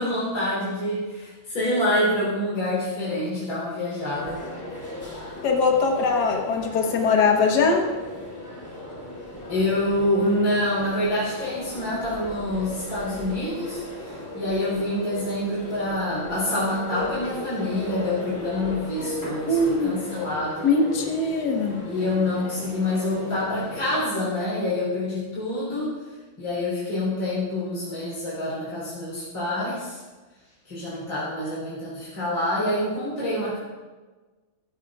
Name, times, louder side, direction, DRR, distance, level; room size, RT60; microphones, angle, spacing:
voice 1, 0.0-4.4 9.5-20.7 21.8-25.9 26.4-30.0 30.7-33.6, left 1 dB, 85° left, -9 dB, 4.8 m, -26 dB
sound 1, 4.1-24.0, left 1 dB, 10° left, 3.6 m, -37 dB
voice 2, 5.4-7.9 19.5-19.9 20.6-21.8, left 4 dB, 55° left, 1 dB, 1.9 m, -21 dB
17.0 x 13.5 x 2.5 m, 1.3 s
omnidirectional pair, 2.2 m